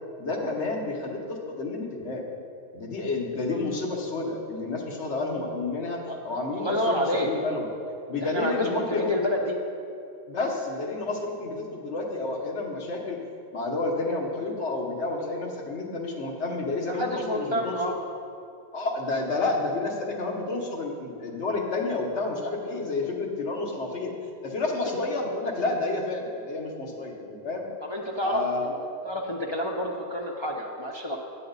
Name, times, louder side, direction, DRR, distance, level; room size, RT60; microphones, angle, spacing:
voice 1, 0.2-2.2 2.7-7.7 8.1-9.1 10.3-13.2 13.5-17.9 18.7-24.1 24.4-27.7 28.2-28.7, left 3 dB, 85° left, 1 dB, 1.4 m, -30 dB
voice 2, 6.5-7.3 8.2-9.6 16.9-18.0 27.8-28.7 29.0-31.2, equal, 35° left, -1 dB, 0.5 m, -28 dB
8.7 x 8.2 x 3.9 m, 2.5 s
omnidirectional pair, 1.1 m